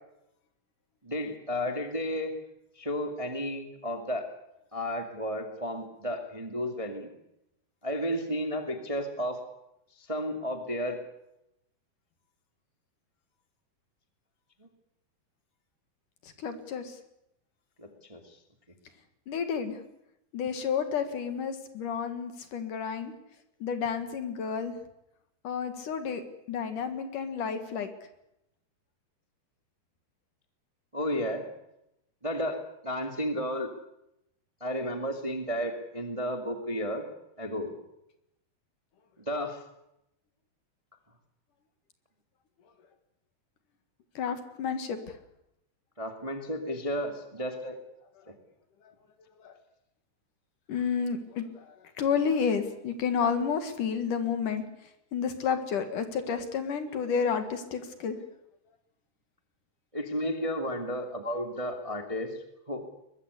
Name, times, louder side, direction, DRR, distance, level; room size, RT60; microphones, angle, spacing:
voice 1, 1.0-2.3 2.8-4.3 4.7-7.1 7.8-9.4 10.0-11.0 17.8-18.2 30.9-31.4 32.2-33.7 34.6-37.0 37.4-37.7 39.2-39.6 46.0-47.8 48.3-48.4 59.9-62.3 62.7-62.8, equal, 10° right, 5 dB, 1.6 m, -32 dB
voice 2, 16.4-17.0 19.3-19.8 20.3-23.1 23.6-24.7 25.4-26.2 26.5-27.9 44.1-45.2 47.4-47.5 48.8-48.9 49.4-49.5 50.7-54.6 55.1-58.2, left 6 dB, 60° left, 8 dB, 3.1 m, -31 dB
22.5 x 21.0 x 8.2 m, 0.82 s
omnidirectional pair, 4.4 m